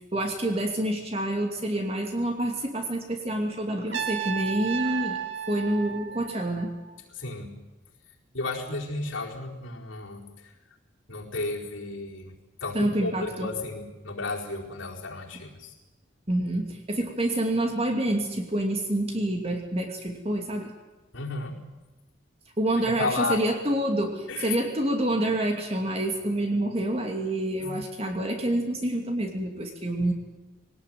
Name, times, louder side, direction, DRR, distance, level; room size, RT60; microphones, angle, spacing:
voice 1, 0.1-5.2 5.5-6.7 12.7-13.5 16.3-20.7 22.6-30.1, right 1 dB, 30° right, 3 dB, 2.5 m, -27 dB
Trumpet, 3.9-6.9, right 8 dB, 60° right, 2.1 m, -33 dB
voice 2, 7.1-7.5 8.3-10.5 11.1-12.3 12.6-15.8 21.1-21.5 22.8-23.4 24.3-24.6 27.6-27.8, left 3 dB, 75° left, -2 dB, 4.6 m, -33 dB
21.5 x 19.0 x 9.3 m, 1.2 s
head